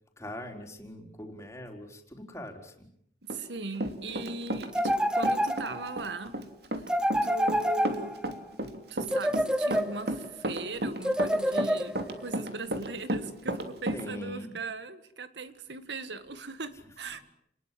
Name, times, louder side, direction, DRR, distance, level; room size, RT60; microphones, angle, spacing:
voice 1, 0.2-2.9 13.9-14.5, left 1 dB, 15° left, 3 dB, 4.3 m, -42 dB
Run, 3.3-5.0 5.2-14.0, right 1 dB, 65° right, 3.0 m, -33 dB
voice 2, 3.3-6.4 7.2-8.2 8.9-17.3, right 3 dB, 80° right, 12 dB, 1.9 m, -39 dB
sound 1, 4.7-6.0 6.9-8.4 9.1-10.3 11.0-12.2, equal, 5° right, 1.0 m, -28 dB
29.5 x 21.0 x 7.6 m, 0.68 s
head